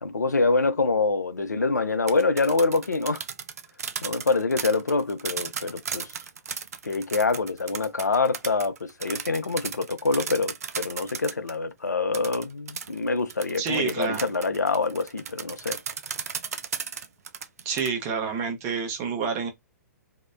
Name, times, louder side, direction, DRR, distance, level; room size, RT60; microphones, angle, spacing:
voice 1, 0.0-3.2 4.0-6.1 6.8-15.8, left 3 dB, 80° left, 0.4 m, -25 dB
sound 1, 1.9-11.6 12.1-17.9, right 6 dB, 60° right, 0.4 m, -35 dB
voice 2, 13.6-14.3 17.6-19.5, right 6 dB, 30° right, 0.7 m, -28 dB
2.8 x 2.0 x 2.3 m
figure-of-eight pair, 115°, 9 cm